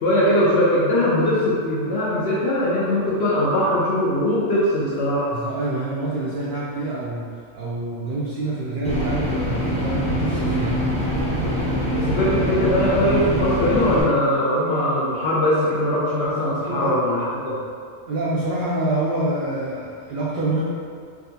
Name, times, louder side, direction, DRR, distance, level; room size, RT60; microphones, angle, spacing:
voice 1, 0.0-5.3 11.9-17.6, left 1 dB, 65° left, -7 dB, 0.8 m, -21 dB
voice 2, 5.3-10.9 16.7-16.9 18.1-20.6, right 2 dB, 60° right, -7 dB, 0.5 m, -26 dB
sound 1, 8.8-14.0, equal, 10° left, 0.3 m, -24 dB
3.6 x 2.4 x 2.7 m, 2.2 s
omnidirectional pair, 1.3 m